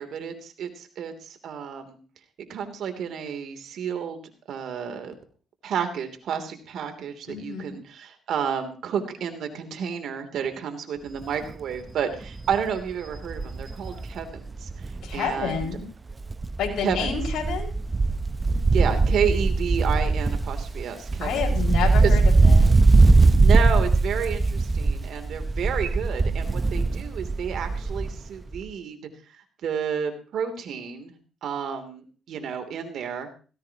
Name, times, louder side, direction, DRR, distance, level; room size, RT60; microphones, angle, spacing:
voice 1, 0.0-2.0 2.5-4.2 4.5-5.1 5.6-15.7 16.8-17.2 18.7-21.4 22.0-22.1 23.4-29.0 29.6-31.1 31.4-33.3, right 7 dB, 70° right, 7 dB, 3.1 m, -31 dB
voice 2, 7.3-7.8 15.0-15.8 16.6-17.7 21.2-22.7, left 6 dB, 75° left, -1 dB, 5.5 m, -29 dB
Wind, 11.2-11.5 11.9-12.0 12.3-15.8 16.1-28.3 28.5-28.6, right 3 dB, 25° right, 0.8 m, -21 dB
18.0 x 16.5 x 3.0 m, 0.37 s
cardioid pair, 90°, 0 cm